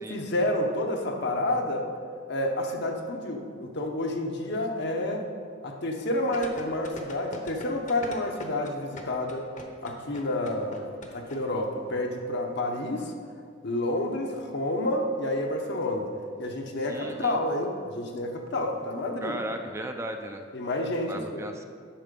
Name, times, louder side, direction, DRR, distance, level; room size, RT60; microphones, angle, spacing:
voice 1, 0.1-1.9 2.3-5.2 5.6-9.5 9.8-13.1 13.6-16.1 16.4-19.4 20.5-21.4, left 1 dB, 60° left, 2 dB, 1.1 m, -29 dB
sound 1, 6.3-11.4 11.6-11.7, left 2 dB, 40° left, 1.0 m, -41 dB
voice 2, 16.9-17.4 19.2-20.4 21.1-21.7, right 1 dB, 15° right, 5 dB, 0.5 m, -36 dB
8.8 x 6.6 x 5.3 m, 2.2 s
head